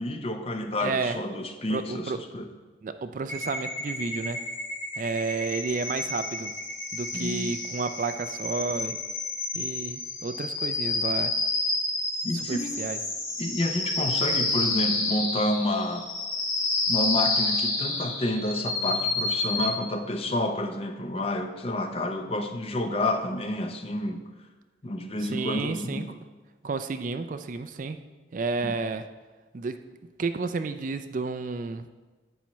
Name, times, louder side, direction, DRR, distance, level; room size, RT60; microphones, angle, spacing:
voice 1, 0.0-2.5 7.1-7.5 12.2-12.8 13.4-16.1 16.9-24.2 24.8-26.1 28.6-28.7, left 1 dB, 30° left, 6 dB, 0.6 m, -29 dB
voice 2, 0.8-1.2 1.7-2.2 2.8-4.4 5.0-6.5 6.9-9.0 9.5-11.3 12.3-13.0 25.2-26.2 26.6-28.0 28.3-29.1 29.5-29.8 30.2-31.9, right 4 dB, 40° right, 9 dB, 0.4 m, -31 dB
sound 1, 3.3-19.7, left 2 dB, 80° left, 2.6 m, -29 dB
10.5 x 8.5 x 3.1 m, 1.3 s
head